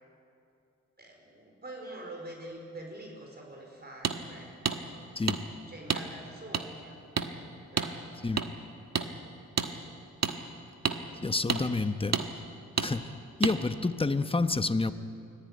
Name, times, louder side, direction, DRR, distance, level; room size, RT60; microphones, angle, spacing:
voice 1, 1.0-5.1 5.7-7.0 7.7-8.0, right 1 dB, 35° right, 1 dB, 4.5 m, -45 dB
sound 1, 4.0-4.2 4.7-4.8 5.3-5.4 5.9-6.0 6.5-6.6 7.2-7.3 7.8-7.9 8.4-8.5 8.9-9.1 9.6-9.7 10.2-10.3 10.8-11.0 11.5-11.6 12.1-12.3 12.8-12.9 13.4-13.6, right 6 dB, 60° right, 1.4 m, -28 dB
voice 2, 11.2-12.2 12.8-13.1 13.4-14.9, left 3 dB, 20° left, 10 dB, 1.0 m, -28 dB
24.0 x 16.5 x 9.6 m, 2.6 s
cardioid pair, 85°, 30 cm